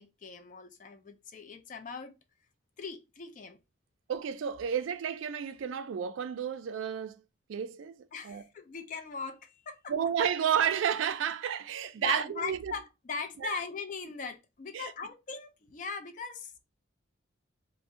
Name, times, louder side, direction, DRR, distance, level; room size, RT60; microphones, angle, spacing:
voice 1, 0.0-2.1 2.8-3.6 8.1-9.9 12.0-16.6, left 5 dB, 40° left, 0.4 m, -40 dB
voice 2, 4.1-7.2 7.5-8.0 8.2-8.4 9.9-12.7 13.4-13.6 14.7-14.9, right 8 dB, 80° right, 0.3 m, -31 dB
2.5 x 2.0 x 3.6 m
head